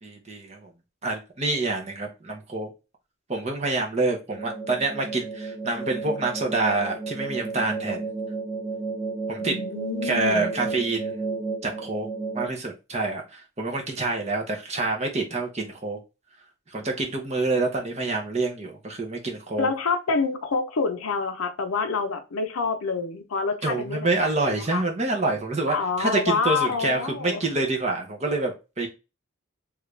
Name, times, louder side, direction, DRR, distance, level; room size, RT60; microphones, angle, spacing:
voice 1, 0.0-0.7 1.0-2.7 3.3-8.0 9.3-9.6 10.0-11.2 11.6-12.1 12.3-16.0 16.7-19.7 23.6-28.9, right 3 dB, 30° right, 2 dB, 0.7 m, -27 dB
sound 1, 4.3-12.5, right 4 dB, ahead, 1.0 m, -32 dB
voice 2, 9.4-10.5 19.6-24.8 25.7-27.4 28.8-28.9, left 4 dB, 85° left, 6 dB, 0.7 m, -27 dB
3.2 x 2.4 x 3.2 m, 0.28 s
head